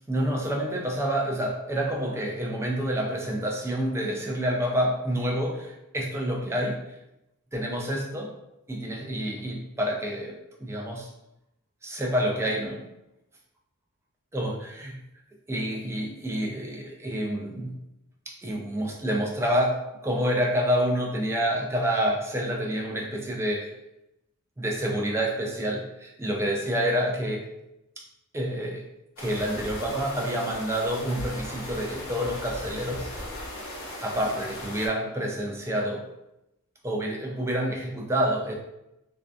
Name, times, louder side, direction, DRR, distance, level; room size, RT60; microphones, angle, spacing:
voice 1, 0.1-6.8 7.5-8.3 8.7-11.1 11.8-12.8 14.3-15.0 15.5-17.8 18.3-23.7 24.6-27.5 28.3-28.8 29.2-33.1 34.0-36.0 36.8-38.5, equal, 10° right, 0 dB, 0.3 m, -28 dB
sound 1, 29.2-34.9, left 1 dB, 70° left, 0.7 m, -37 dB
2.5 x 2.2 x 2.4 m, 0.88 s
head